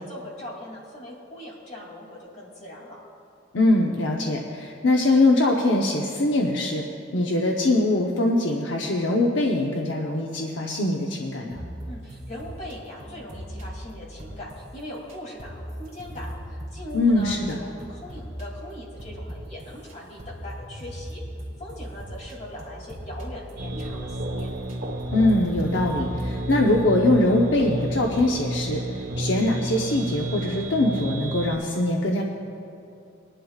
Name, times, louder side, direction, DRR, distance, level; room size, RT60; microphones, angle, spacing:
voice 1, 0.0-3.0 11.8-21.2 21.6-24.5, left 1 dB, 40° left, -3 dB, 2.8 m, -40 dB
voice 2, 3.5-6.8 7.1-11.6 16.9-17.6 25.1-32.2, left 2 dB, 75° left, 0 dB, 0.9 m, -22 dB
sound 1, 11.5-19.9 20.2-26.8, equal, 40° right, 3.1 m, -39 dB
sound 2, 23.6-31.6, right 1 dB, 85° right, 1.4 m, -31 dB
21.5 x 11.0 x 2.4 m, 2.7 s
head